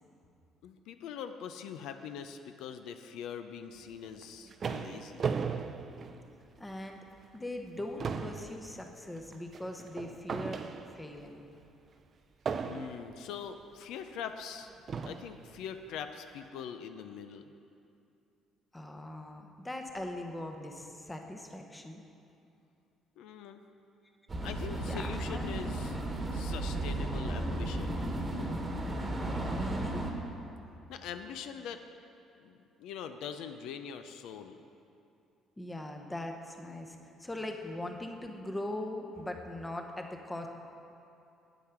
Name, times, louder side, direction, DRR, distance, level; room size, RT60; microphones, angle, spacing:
voice 1, 0.6-5.2 12.6-14.7 15.1-17.4 23.2-23.6 24.4-26.0 26.3-28.0 30.9-31.8 32.4-34.7, left 7 dB, 80° left, 8 dB, 0.5 m, -43 dB
sound 1, 4.1-6.7 7.2-7.4 7.7-11.2 12.5-13.2 14.1-14.2 14.9-15.4, right 6 dB, 40° right, 0.4 m, -37 dB
voice 2, 6.6-7.0 7.3-10.6 10.9-11.4 18.7-22.0 24.8-25.6 29.1-30.0 35.6-40.5, left 1 dB, 10° left, 4 dB, 0.8 m, -40 dB
sound 2, 24.3-30.1, right 1 dB, 20° right, 1.3 m, -34 dB
9.0 x 8.2 x 5.9 m, 2.6 s
cardioid pair, 125°, 0 cm